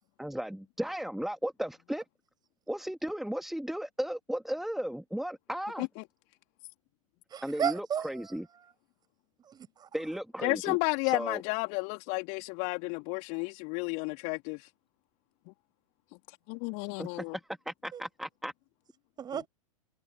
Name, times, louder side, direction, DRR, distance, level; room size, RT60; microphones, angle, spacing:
voice 1, 0.2-2.0 2.7-5.9 7.4-8.5 9.9-10.8 11.0-11.4 17.0-18.5, equal, ahead, 2.6 m, -35 dB
voice 2, 7.3-8.1 9.5-9.9 17.9-18.0 19.2-19.5, right 8 dB, 20° right, 6.8 m, -33 dB
voice 3, 10.4-14.6 16.5-17.4, left 35 dB, 40° left, 3.6 m, -32 dB
figure-of-eight pair, 95°, 19 cm